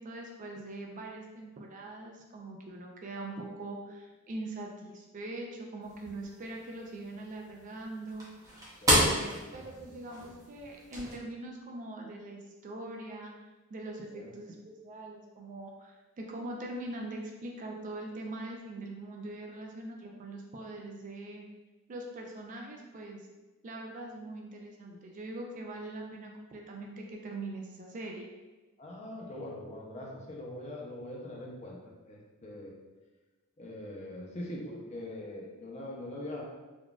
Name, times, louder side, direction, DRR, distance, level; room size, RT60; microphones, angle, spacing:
voice 1, 0.0-8.3 8.8-13.3 13.7-21.5 21.9-23.2 23.6-28.3, right 2 dB, 35° right, 1 dB, 0.3 m, -42 dB
sound 1, 5.8-11.1, equal, 15° right, 0.7 m, -32 dB
voice 2, 8.8-9.2 14.1-14.3 28.8-32.7 33.6-36.4, left 1 dB, 30° left, -3 dB, 0.5 m, -42 dB
3.8 x 2.3 x 2.3 m, 1.2 s
head